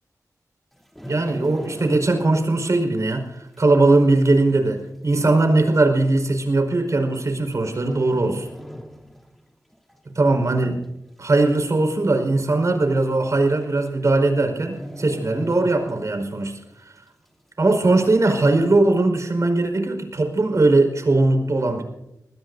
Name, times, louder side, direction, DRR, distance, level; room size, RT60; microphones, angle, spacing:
sound 1, 0.7-2.5 2.7-3.0 3.6-3.7 4.6-4.7 4.9-5.0 5.8-6.0 7.1-7.5 7.8-9.4 9.7-9.9 10.4-11.0 11.3-11.4 11.6-11.7 12.1-12.2 13.2-13.3 13.6-13.9 14.1-14.3 14.7-16.3 16.7-16.8, equal, 5° left, 2.9 m, -38 dB
voice 1, 1.0-8.5 10.1-10.8 11.2-16.5 17.6-21.8, right 2 dB, 55° right, 5 dB, 5.0 m, -20 dB
24.5 x 20.5 x 2.7 m, 0.89 s
wide cardioid pair, 65°, 6 cm